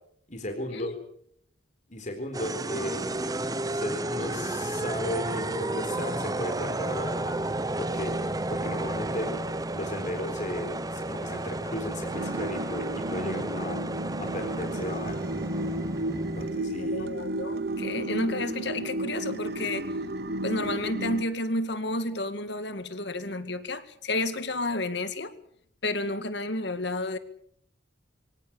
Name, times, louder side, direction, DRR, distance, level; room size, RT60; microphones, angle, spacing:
voice 1, 0.3-0.9 1.9-3.0 3.6-7.4 7.8-8.1 8.5-9.3 9.7-15.3 16.4-17.1, left 1 dB, 40° left, 5 dB, 4.0 m, -35 dB
sound 1, 2.3-16.6, right 2 dB, 20° right, 1.0 m, -32 dB
sound 2, 12.1-21.2, right 1 dB, 55° right, 1.0 m, -33 dB
voice 2, 16.8-19.9 20.4-25.3 25.8-27.2, left 2 dB, 60° left, 11 dB, 2.2 m, -31 dB
24.5 x 18.0 x 8.7 m, 0.69 s
head